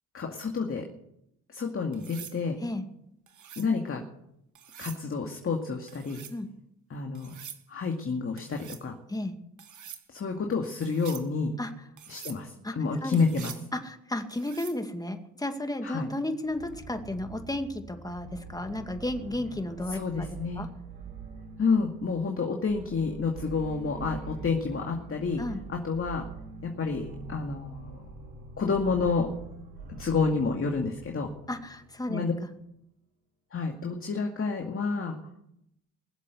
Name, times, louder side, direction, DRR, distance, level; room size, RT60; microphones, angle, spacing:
voice 1, 0.1-0.9 1.5-2.6 3.6-4.0 4.8-6.2 6.9-7.4 7.7-9.0 10.1-11.5 12.1-13.5 15.8-16.1 19.9-20.7 21.6-25.4 25.7-26.2 26.6-28.0 28.6-29.3 30.0-31.3 32.1-32.3 33.5-35.2, left 4 dB, 35° left, 2 dB, 2.2 m, -29 dB
sound 1, 1.9-2.4 3.3-3.7 4.6-5.0 5.9-6.4 7.2-7.6 8.4-8.9 9.6-10.0 10.8-11.3 12.0-12.4 13.1-13.7 14.3-14.8 16.7-17.0, right 8 dB, 55° right, 1.7 m, -45 dB
voice 2, 13.7-20.3 20.6-20.7 25.4-25.6 31.5-32.5, left 1 dB, 10° left, 6 dB, 2.2 m, -33 dB
sound 2, 16.5-32.1, right 3 dB, 85° right, 4.7 m, -44 dB
21.5 x 7.6 x 8.1 m, 0.80 s
supercardioid pair, 65°, 36 cm